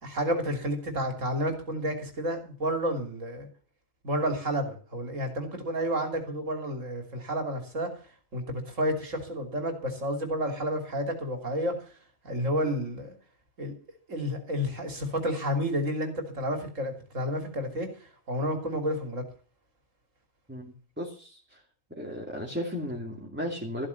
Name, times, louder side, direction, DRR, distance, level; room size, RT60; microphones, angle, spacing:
voice 1, 0.0-3.5 4.0-7.9 8.3-11.7 12.2-13.1 13.6-13.7 14.1-17.9 18.3-19.2, equal, 65° right, 5 dB, 3.5 m, -30 dB
voice 2, 20.5-21.6 21.9-23.9, equal, 10° right, -1 dB, 2.4 m, -35 dB
14.5 x 8.7 x 7.1 m, 0.39 s
omnidirectional pair, 1.4 m